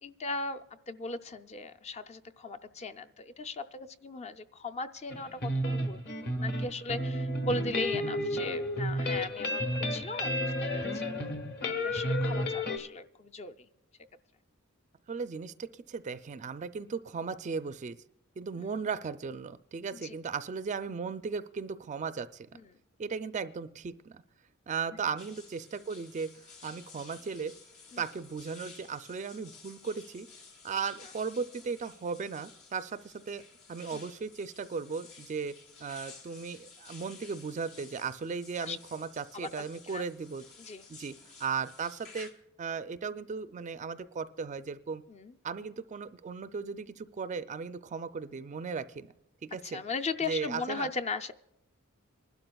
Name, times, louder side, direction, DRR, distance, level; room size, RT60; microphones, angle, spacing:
voice 1, 0.0-11.1 11.6-13.7 18.6-18.7 19.9-20.1 27.9-28.0 33.9-34.1 38.6-38.8 39.3-39.5 39.9-40.0 40.6-40.8 45.1-45.3 49.5-51.3, left 3 dB, 30° left, 9 dB, 0.4 m, -38 dB
sound 1, 5.1-12.8, left 1 dB, 50° left, 1.2 m, -32 dB
voice 2, 15.1-18.0 18.4-22.5 23.0-24.2 24.7-27.5 28.0-30.3 30.6-33.4 33.7-40.5 40.9-42.3 42.6-45.0 45.4-49.1 49.4-49.8 50.2-50.9, right 5 dB, 35° right, 13 dB, 0.4 m, -36 dB
sound 2, 25.2-42.3, left 4 dB, 80° left, 2.4 m, -53 dB
26.5 x 12.0 x 2.3 m, 0.87 s
head